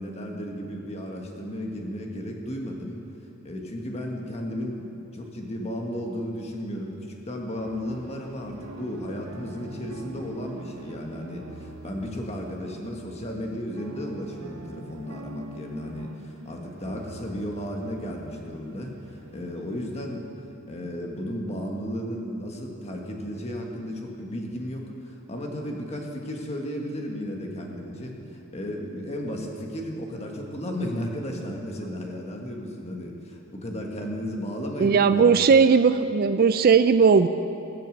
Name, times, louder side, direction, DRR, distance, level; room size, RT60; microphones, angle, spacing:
voice 1, 0.0-3.0 3.4-7.0 7.2-18.9 19.3-20.3 20.7-35.5, equal, 30° left, 1 dB, 1.5 m, -34 dB
sound 1, 7.5-20.2, right 2 dB, 65° right, 1.0 m, -45 dB
voice 2, 34.8-37.3, right 5 dB, 45° right, 11 dB, 0.3 m, -18 dB
18.5 x 6.7 x 7.7 m, 3.0 s
head